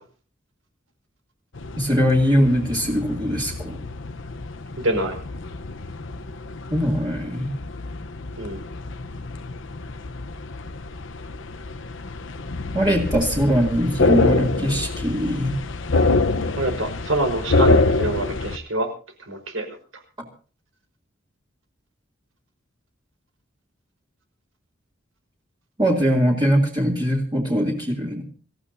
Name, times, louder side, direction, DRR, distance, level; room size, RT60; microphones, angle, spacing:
sound 1, 1.5-18.6, left 3 dB, 70° left, 1.0 m, -26 dB
voice 1, 1.8-3.8 6.7-7.5 12.7-15.6 25.8-28.2, equal, 20° right, -2 dB, 2.9 m, -21 dB
voice 2, 4.8-5.2 8.4-8.6 16.6-18.9 19.3-19.8, right 1 dB, 90° right, 5 dB, 5.0 m, -25 dB
26.5 x 15.0 x 2.7 m, 0.39 s
head